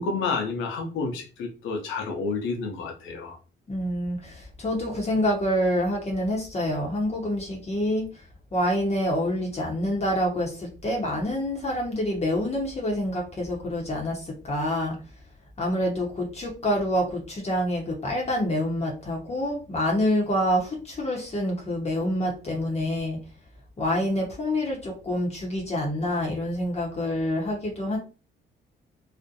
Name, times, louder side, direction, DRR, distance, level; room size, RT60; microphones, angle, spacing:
voice 1, 0.0-3.4, left 4 dB, 75° left, 4 dB, 0.7 m, -30 dB
voice 2, 3.7-8.2 8.5-15.0 15.6-23.2 23.8-28.0, equal, 35° left, -1 dB, 0.8 m, -27 dB
2.4 x 2.1 x 2.7 m, 0.35 s
cardioid pair, 90°, 20 cm